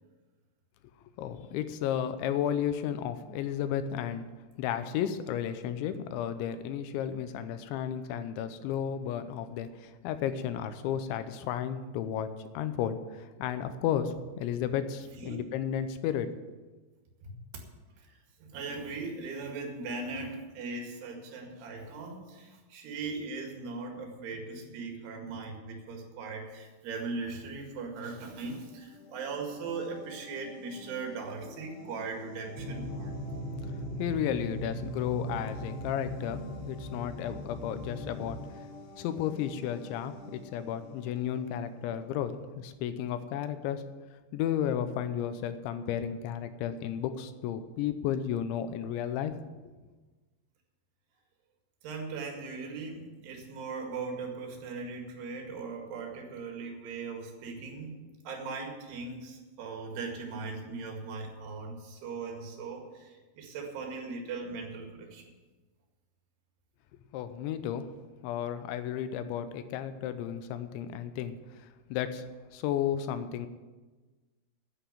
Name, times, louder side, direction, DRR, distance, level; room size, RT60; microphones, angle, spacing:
voice 1, 1.2-4.3 4.6-12.3 12.5-16.3 34.0-38.4 39.0-43.8 44.3-49.3 67.1-67.9 68.2-72.2 72.5-73.5, left 9 dB, 80° left, 10 dB, 3.0 m, -33 dB
voice 2, 18.4-33.1 51.8-65.3, right 4 dB, 65° right, 2 dB, 3.9 m, -39 dB
sound 1, 28.6-42.1, left 2 dB, 65° left, 3.9 m, -50 dB
sound 2, 32.6-38.5, equal, 80° right, 4.0 m, -39 dB
10.0 x 8.2 x 9.1 m, 1.3 s
omnidirectional pair, 5.5 m